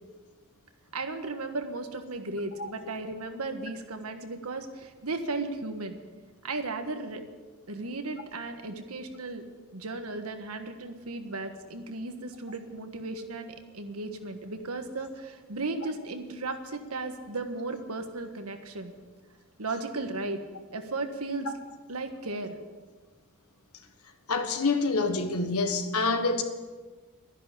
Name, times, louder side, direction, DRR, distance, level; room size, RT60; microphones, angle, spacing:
voice 1, 0.9-6.0 6.4-7.2 7.7-9.4 9.7-18.9 19.6-20.4 20.7-21.5 21.9-22.6, right 3 dB, 85° right, 6 dB, 1.5 m, -35 dB
voice 2, 24.3-26.4, left 3 dB, 90° left, 7 dB, 1.5 m, -26 dB
12.5 x 10.5 x 7.6 m, 1.3 s
head